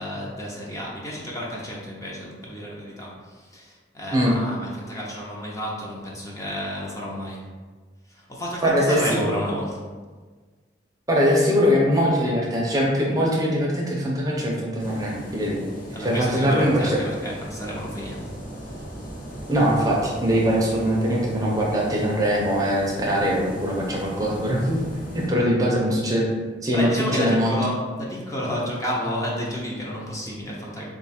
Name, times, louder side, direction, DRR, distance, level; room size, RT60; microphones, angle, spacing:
voice 1, 0.0-7.5 8.1-9.8 15.9-18.2 26.7-30.8, equal, 20° left, -4 dB, 0.6 m, -31 dB
voice 2, 8.6-9.0 11.1-15.6 16.0-17.0 19.5-26.3 26.6-27.5, equal, 20° right, -3 dB, 0.6 m, -22 dB
sound 1, 14.8-25.3, right 1 dB, 50° left, 0.9 m, -38 dB
4.0 x 2.4 x 4.1 m, 1.4 s
head